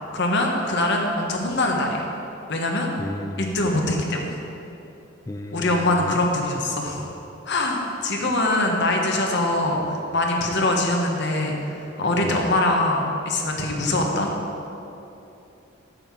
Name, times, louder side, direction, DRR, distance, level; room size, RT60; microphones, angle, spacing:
voice 1, 0.1-2.1 2.5-2.9 3.4-4.4 5.5-7.0 7.5-14.3, left 2 dB, 60° left, 1 dB, 1.4 m, -23 dB
voice 2, 3.0-3.8 5.3-6.2 12.2-12.4, left 1 dB, 15° left, 4 dB, 0.4 m, -33 dB
8.9 x 5.8 x 7.5 m, 2.9 s
head